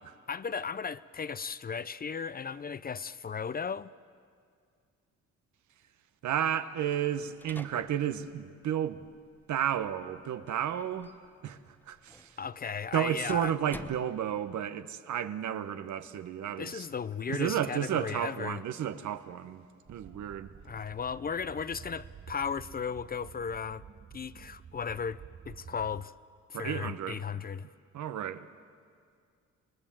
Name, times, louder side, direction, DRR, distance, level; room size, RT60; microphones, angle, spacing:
voice 1, 0.3-3.9 12.4-13.5 16.6-18.6 20.6-23.8 24.1-26.1 26.5-27.7, left 6 dB, 30° left, 0.5 m, -36 dB
voice 2, 6.2-9.0 9.5-11.1 11.4-11.6 11.9-12.4 12.9-16.9 17.3-20.5 26.5-27.2 27.9-28.5, right 10 dB, 70° right, 1.1 m, -32 dB
sound 1, 6.9-14.7, left 1 dB, 5° left, 0.9 m, -52 dB
sound 2, 19.9-26.1, right 7 dB, 30° right, 0.7 m, -50 dB
27.0 x 20.5 x 7.5 m
cardioid pair, 90°, 30 cm